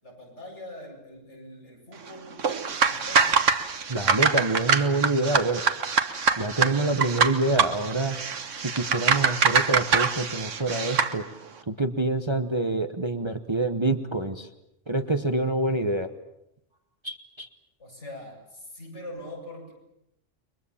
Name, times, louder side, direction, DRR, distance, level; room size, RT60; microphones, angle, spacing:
voice 1, 0.0-2.5 2.7-3.4 17.8-19.7, left 1 dB, 70° left, -1 dB, 8.2 m, -42 dB
sound 1, 2.4-11.1, right 5 dB, 90° right, 1.7 m, -24 dB
voice 2, 3.9-5.6 6.4-8.2 8.5-11.3 11.7-14.5 14.9-16.1 17.0-17.5, right 2 dB, 25° right, 8 dB, 1.1 m, -26 dB
29.5 x 23.0 x 7.2 m, 0.81 s
omnidirectional pair, 1.2 m